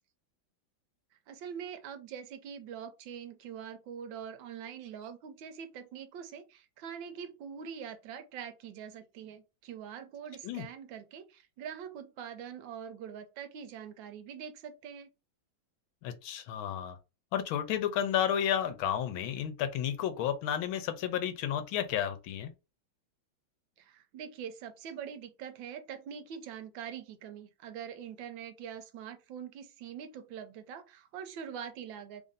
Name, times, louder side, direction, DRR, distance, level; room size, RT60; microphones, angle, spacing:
voice 1, 1.3-15.1 23.8-32.2, right 8 dB, 75° right, 1.3 m, -44 dB
voice 2, 16.0-17.0 17.3-22.5, left 9 dB, 85° left, 1.5 m, -32 dB
3.4 x 2.5 x 3.9 m
omnidirectional pair, 2.2 m